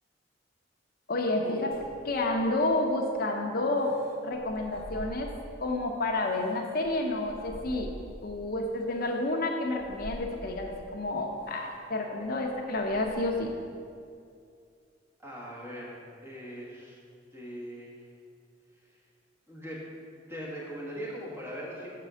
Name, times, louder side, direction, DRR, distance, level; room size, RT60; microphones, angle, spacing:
voice 1, 1.1-1.7 2.1-4.0 4.2-5.3 5.6-7.9 8.2-13.5, left 2 dB, 55° left, 2 dB, 0.6 m, -30 dB
sound 1, 1.7-2.9 3.7-5.7 6.1-8.4 9.0-9.1 9.7-10.9 11.4-11.8 12.2-13.5, equal, 55° right, 1.5 m, -46 dB
voice 2, 15.2-17.0 17.3-18.1 18.9-19.0 19.5-19.8 20.3-22.0, equal, 15° right, -6 dB, 1.4 m, -40 dB
6.6 x 4.1 x 6.1 m, 2.4 s
head